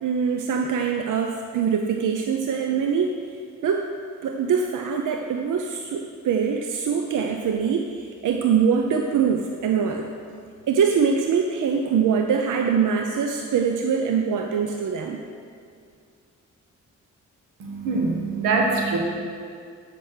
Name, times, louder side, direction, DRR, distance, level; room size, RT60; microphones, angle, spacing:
voice 1, 0.0-3.2 3.6-3.9 4.2-10.1 10.7-15.2, right 6 dB, 70° right, 3 dB, 0.7 m, -23 dB
voice 2, 17.6-19.0, right 3 dB, 90° right, 0 dB, 1.3 m, -23 dB
7.7 x 6.0 x 6.3 m, 2.2 s
supercardioid pair, 50°, 33 cm